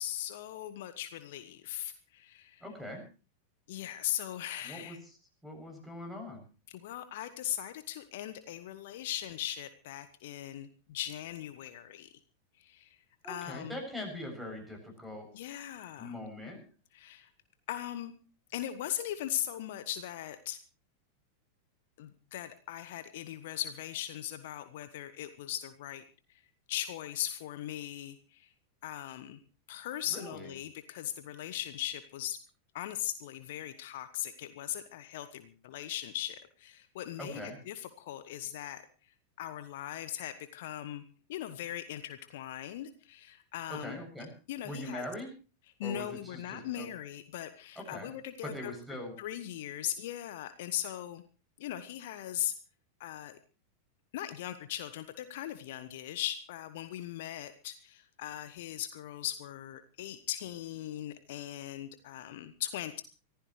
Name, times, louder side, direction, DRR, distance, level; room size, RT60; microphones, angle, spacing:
voice 1, 0.0-2.6 3.7-5.0 6.7-12.1 12.6-13.0 13.3-13.8 15.3-16.1 16.9-17.3 17.7-18.1 18.5-20.6 22.0-26.0 26.3-26.4 26.7-28.5 28.8-29.4 29.7-32.4 32.7-38.8 39.4-41.0 41.3-44.0 44.5-45.0 45.8-48.7 49.2-51.2 51.6-52.5 53.0-53.4 54.1-63.0, left 12 dB, 55° left, 11 dB, 1.1 m, -39 dB
voice 2, 2.6-3.0 4.6-5.0 5.4-6.4 13.2-15.3 16.0-16.6 30.1-30.5 37.2-37.6 43.7-44.3 44.6-45.3 45.8-46.9 47.8-48.1 48.4-49.1, left 1 dB, 5° right, 4 dB, 7.6 m, -41 dB
24.5 x 15.0 x 3.2 m, 0.35 s
figure-of-eight pair, 90°, 0 cm